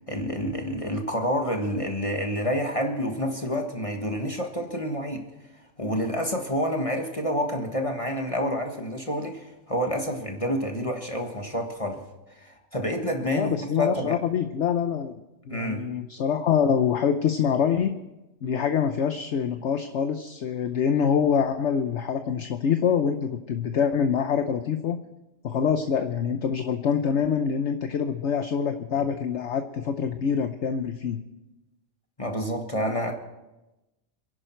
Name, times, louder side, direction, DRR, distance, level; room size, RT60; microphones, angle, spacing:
voice 1, 0.1-5.3 5.8-12.0 12.3-13.5 13.8-14.2 15.5-15.9 28.9-29.0 32.2-33.1, equal, 25° left, 3 dB, 1.5 m, -28 dB
voice 2, 13.3-15.1 15.5-18.0 18.4-25.0 25.4-31.2, left 7 dB, 60° left, 8 dB, 1.0 m, -25 dB
27.0 x 11.0 x 4.5 m, 1.0 s
omnidirectional pair, 1.4 m